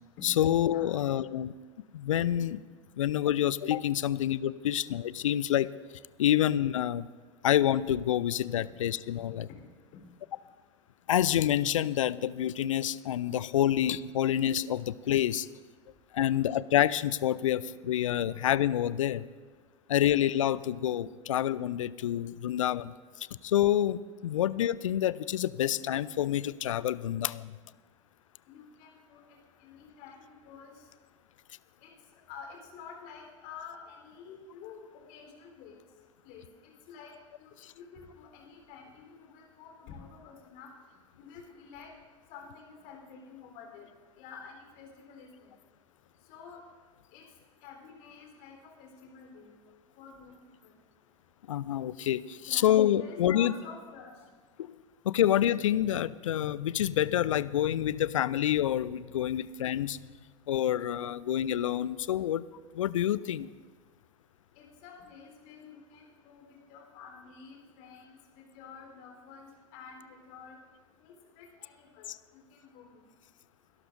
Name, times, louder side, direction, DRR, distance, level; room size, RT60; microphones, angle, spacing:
voice 1, 0.2-1.5 1.9-2.6 3.0-5.7 6.2-7.1 7.4-9.5 11.1-15.5 16.1-19.3 19.9-27.6 37.6-37.7 51.5-53.5 54.6-54.8 55.0-60.0 60.5-62.4 62.7-63.5 72.1-72.2, left 11 dB, 75° left, 18 dB, 0.4 m, -28 dB
voice 2, 28.5-29.2 29.6-30.8 31.8-31.9 32.3-35.7 36.2-37.1 37.4-37.5 37.8-40.7 41.2-41.9 42.3-43.8 44.2-45.5 46.3-46.6 47.1-47.2 47.6-49.5 50.0-50.3 50.6-50.7 52.4-54.1 64.6-70.6 71.0-72.1 72.3-73.0, left 6 dB, 50° left, 1 dB, 3.8 m, -49 dB
23.0 x 12.5 x 2.6 m, 1.4 s
figure-of-eight pair, 85°, 17 cm